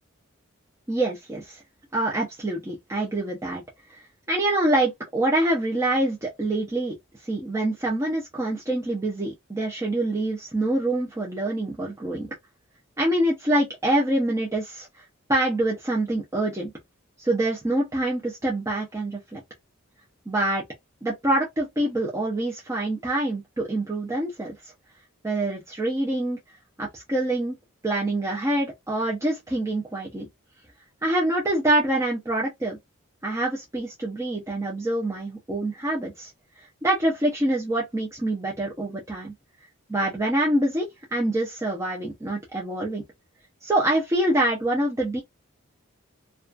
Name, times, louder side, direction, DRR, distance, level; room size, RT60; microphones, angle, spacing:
voice 1, 0.9-1.6 1.9-3.6 3.9-4.0 4.3-6.9 7.2-12.3 13.0-15.0 15.3-16.7 17.2-19.4 20.3-20.6 21.0-24.7 25.2-27.5 27.8-30.3 31.0-32.8 33.2-36.3 36.6-39.3 39.9-43.0 43.6-45.2, right 1 dB, 15° right, 0.5 m, -25 dB
2.3 x 2.3 x 2.3 m
head